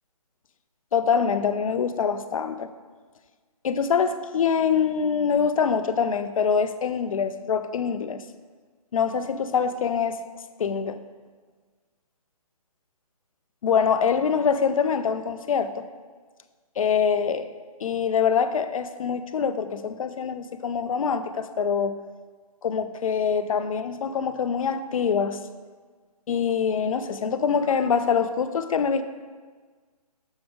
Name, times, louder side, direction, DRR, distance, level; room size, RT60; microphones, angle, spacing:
voice 1, 0.9-2.7 3.6-8.2 8.9-10.2 10.6-11.0 13.6-15.8 16.8-17.5 17.8-22.0 22.6-25.4 26.3-29.0, left 6 dB, 60° left, 11 dB, 0.4 m, -24 dB
6.1 x 3.4 x 5.2 m, 1.5 s
hypercardioid pair, 155°, 20 cm